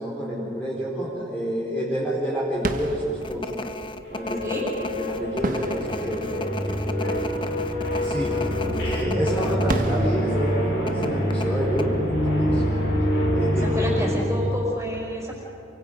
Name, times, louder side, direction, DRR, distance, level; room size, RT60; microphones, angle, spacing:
voice 1, 0.0-3.5 4.1-7.3 8.0-8.4 8.8-12.6 13.3-14.0, equal, 10° left, -7 dB, 4.3 m, -29 dB
sound 1, 2.5-13.1, right 1 dB, 45° right, 1.4 m, -36 dB
sound 2, 3.2-9.8 10.1-10.3 10.9-11.9, left 2 dB, 25° left, 0.8 m, -34 dB
sound 3, 4.1-14.2, equal, 70° left, 7.1 m, -26 dB
voice 2, 9.0-9.4 13.6-15.3, equal, 15° right, -3 dB, 6.1 m, -30 dB
28.5 x 24.5 x 5.3 m, 2.8 s
head